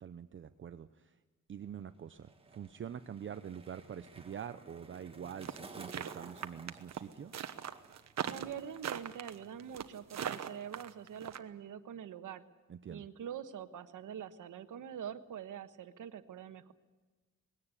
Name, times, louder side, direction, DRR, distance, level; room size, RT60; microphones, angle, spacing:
voice 1, 0.0-1.1 1.5-7.3 12.7-13.0, right 8 dB, 40° right, 11 dB, 0.6 m, -45 dB
Skateboard, 1.6-9.2 9.4-9.9, right 3 dB, 20° right, 1.8 m, -55 dB
sound 1, 5.4-11.4, right 9 dB, 60° right, 1.2 m, -39 dB
voice 2, 8.3-12.4 12.9-16.7, right 9 dB, 80° right, 11 dB, 1.3 m, -45 dB
20.5 x 17.0 x 9.8 m, 1.3 s
wide cardioid pair, 180°, 31 cm